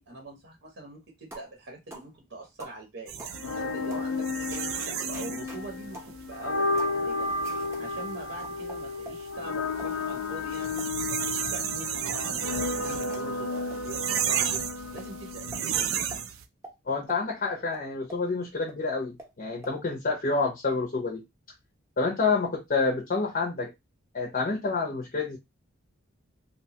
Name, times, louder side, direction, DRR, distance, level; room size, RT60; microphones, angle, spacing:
voice 1, 0.0-7.3 7.8-10.8 11.2-14.7 14.9-15.9, right 2 dB, 60° right, 0.7 m, -43 dB
sound 1, 1.3-1.5 1.9-2.1 2.6-2.8 3.2-3.4 3.9-4.1 4.5-5.6 5.9-6.1 6.8-7.0 7.4-7.8 8.4-9.2 9.7-9.9 10.4-10.9 11.2-12.2 12.7-13.2 13.7-13.8 14.1-14.2 14.5-14.6 15.0-15.1 15.5-15.6 16.1-16.2 16.6-16.8 17.1-17.2 17.7-18.2 18.7-18.8 19.2-19.3 19.6-19.7, right 1 dB, 15° right, 0.6 m, -46 dB
sound 2, 3.1-16.4, right 9 dB, 80° right, 0.4 m, -34 dB
sound 3, 3.3-16.3, left 3 dB, 90° left, 0.7 m, -33 dB
voice 2, 16.9-21.2 22.0-23.7 24.1-25.4, left 4 dB, 45° left, 0.6 m, -28 dB
2.8 x 2.2 x 2.8 m
head